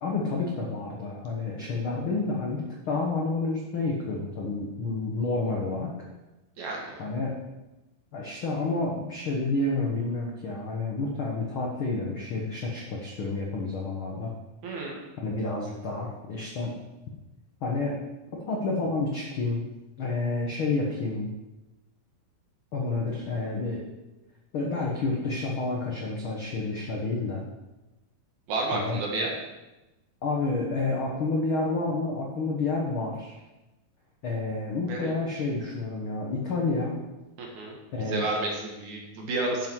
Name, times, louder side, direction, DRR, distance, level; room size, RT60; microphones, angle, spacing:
voice 1, 0.0-5.9 7.0-7.3 8.1-14.3 15.2-16.7 17.6-17.9 18.5-19.7 20.0-21.3 22.7-23.8 24.5-27.4 28.7-29.0 30.2-33.3 34.2-37.0 37.9-38.3, left 3 dB, 65° left, -1 dB, 1.3 m, -29 dB
voice 2, 6.6-7.0 14.6-15.0 28.5-29.3 34.9-35.4 37.4-37.8 38.1-39.7, right 2 dB, 60° right, -1 dB, 2.8 m, -31 dB
11.5 x 7.6 x 4.7 m, 1.0 s
omnidirectional pair, 4.2 m